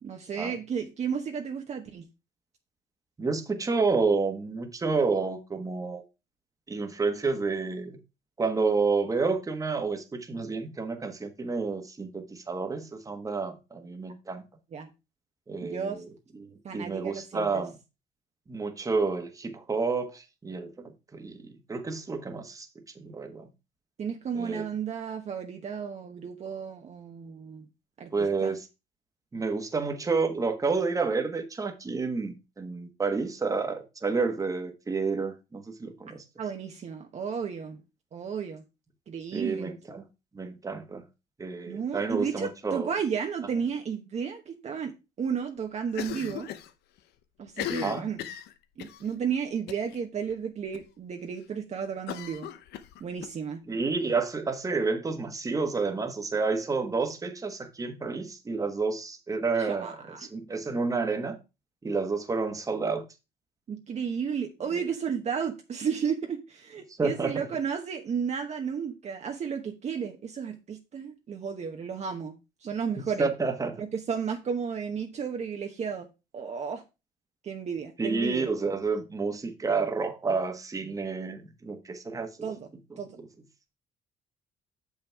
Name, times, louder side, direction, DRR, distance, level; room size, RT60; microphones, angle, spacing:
voice 1, 0.0-2.1 14.7-14.9 15.6-16.0 16.6-17.6 24.0-27.7 28.0-28.5 36.4-37.8 38.1-38.6 39.1-39.7 41.7-46.5 47.4-48.2 48.8-52.5 53.0-53.6 59.6-60.3 63.7-73.3 73.8-76.1 76.3-76.8 77.4-78.5 82.4-82.7 83.0-83.2, right 7 dB, 40° right, 1.0 m, -33 dB
voice 2, 3.2-6.0 6.7-8.0 8.4-14.4 15.5-16.0 16.7-17.7 18.5-22.7 22.9-23.4 24.3-24.6 28.1-28.6 29.3-36.2 39.3-40.0 40.3-41.0 41.4-42.9 47.8-48.1 53.7-60.0 60.3-61.4 61.8-63.1 67.0-67.5 73.0-73.8 78.0-82.3, right 4 dB, 20° right, 1.3 m, -29 dB
Cough, 45.9-46.7 47.0-47.1 47.5-49.0 49.7-50.0 50.3-50.4 50.7-50.8 52.1-53.3, left 11 dB, 75° left, 0.7 m, -37 dB
6.7 x 5.7 x 4.6 m
cardioid pair, 110°, 17 cm